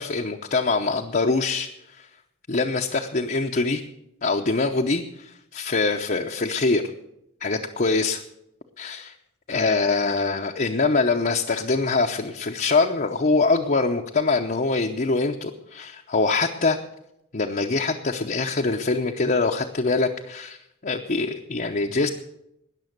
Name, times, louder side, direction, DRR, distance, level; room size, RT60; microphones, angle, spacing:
voice 1, 0.0-2.1 2.5-3.8 4.2-6.8 7.4-8.2 8.8-9.1 9.5-16.8 17.3-20.6 20.8-22.1, left 3 dB, 40° left, 1 dB, 0.7 m, -24 dB
20.0 x 6.9 x 6.6 m, 0.80 s
head